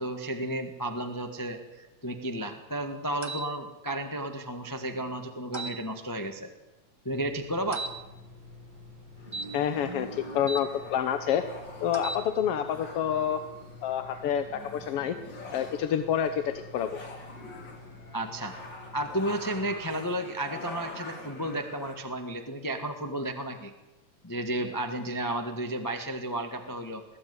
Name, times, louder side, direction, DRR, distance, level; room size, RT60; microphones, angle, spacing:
voice 1, 0.0-6.5 7.0-7.9 18.1-18.5 18.9-23.7 24.2-27.0, right 1 dB, 15° left, 5 dB, 0.8 m, -33 dB
sound 1, 3.2-3.5 5.5-5.8 7.7-7.9 9.3-10.6 11.9-12.2, right 3 dB, 20° right, 0.7 m, -37 dB
sound 2, 7.1-20.0, left 3 dB, 70° right, 8.3 m, -49 dB
sound 3, 9.2-22.0, left 2 dB, 35° left, 3.4 m, -46 dB
voice 2, 9.5-11.5 11.8-13.4 13.8-15.2 15.5-17.0, left 9 dB, 65° left, 9 dB, 1.7 m, -28 dB
21.5 x 15.5 x 9.6 m, 1.0 s
omnidirectional pair, 3.4 m